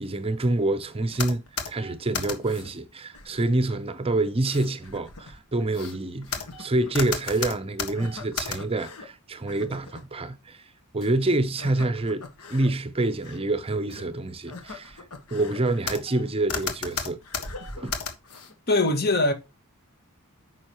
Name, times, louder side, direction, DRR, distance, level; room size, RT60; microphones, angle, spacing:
voice 1, 0.0-10.6 10.9-12.2 12.5-15.0 15.3-17.2 17.8-18.0, right 2 dB, 25° right, 0.6 m, -27 dB
sound 1, 1.1-2.7 3.1-3.7 4.4-9.1 9.5-10.0 11.0-11.1 11.6-12.7 13.1-13.4 13.9-14.0 14.5-16.2 16.5-18.5, left 5 dB, 85° left, 1.6 m, -35 dB
voice 2, 18.7-19.3, left 2 dB, 45° left, 1.7 m, -21 dB
9.2 x 6.2 x 3.0 m
head